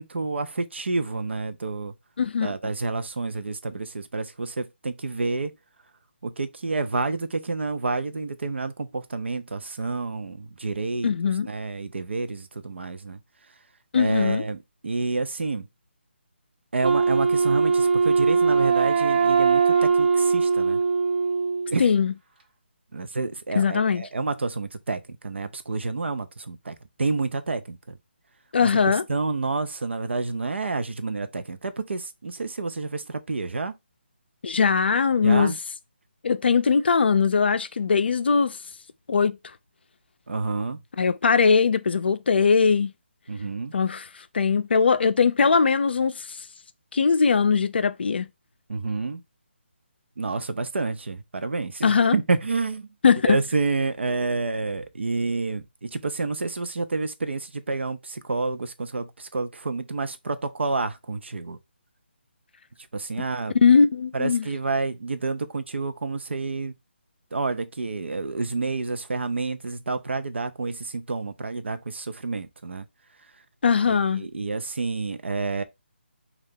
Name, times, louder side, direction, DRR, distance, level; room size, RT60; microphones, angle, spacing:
voice 1, 0.0-1.9 2.4-5.5 6.2-11.1 11.5-13.2 13.9-15.7 16.7-20.8 21.7-21.8 22.9-27.8 29.1-33.7 35.2-35.6 40.3-40.8 43.3-43.7 48.7-49.2 50.2-52.9 53.3-61.6 62.9-63.5 64.1-66.7 67.3-72.8 73.9-75.6, right 3 dB, 75° right, 0.5 m, -29 dB
voice 2, 2.2-2.5 11.0-11.5 13.9-14.4 21.8-22.1 23.6-24.1 28.5-29.1 34.4-35.5 36.2-38.6 39.1-39.4 41.0-42.9 43.7-44.1 44.3-46.4 46.9-48.3 51.8-52.2 53.0-53.4 63.5-64.5 73.6-74.2, left 5 dB, 60° left, 0.4 m, -20 dB
Wind instrument woodwind instrument, 16.8-21.8, right 5 dB, 55° right, 0.9 m, -21 dB
2.7 x 2.4 x 3.6 m
figure-of-eight pair, 155°, 6 cm